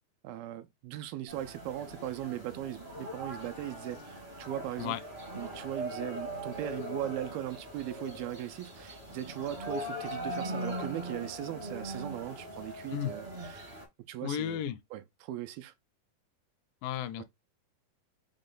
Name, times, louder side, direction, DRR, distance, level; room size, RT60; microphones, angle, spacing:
voice 1, 0.2-5.0 5.4-13.8 14.1-14.6 14.9-15.7 17.2-17.3, right 12 dB, 85° right, 2.5 m, -39 dB
sound 1, 1.3-13.8, equal, 55° right, 0.5 m, -41 dB
voice 2, 14.2-14.8 16.8-17.2, left 10 dB, 80° left, 2.1 m, -33 dB
6.3 x 2.2 x 3.8 m
omnidirectional pair, 4.2 m